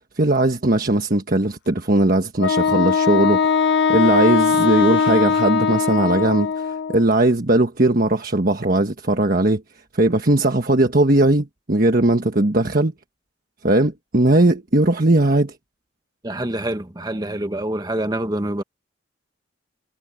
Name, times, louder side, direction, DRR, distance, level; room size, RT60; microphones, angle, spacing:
voice 1, 0.2-9.6 9.9-12.9 13.6-15.5, right 2 dB, 45° right, 1.4 m, -18 dB
Wind instrument woodwind instrument, 2.4-7.0, left 6 dB, 60° left, 0.6 m, -20 dB
voice 2, 16.2-18.6, right 1 dB, 20° right, 1.3 m, -26 dB
head